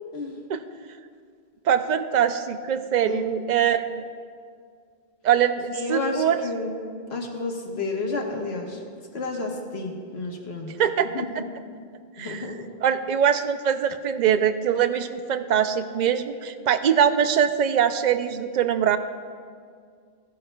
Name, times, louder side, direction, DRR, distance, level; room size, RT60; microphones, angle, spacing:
voice 1, 1.7-4.1 5.2-6.4 10.8-11.4 12.2-12.5 12.8-19.0, right 8 dB, 55° right, 10 dB, 0.5 m, -23 dB
voice 2, 5.7-6.7 7.1-8.8 9.1-10.7 11.1-11.4 12.2-12.6, left 3 dB, 70° left, 1 dB, 1.5 m, -30 dB
16.0 x 11.5 x 2.3 m, 2.1 s
omnidirectional pair, 1.1 m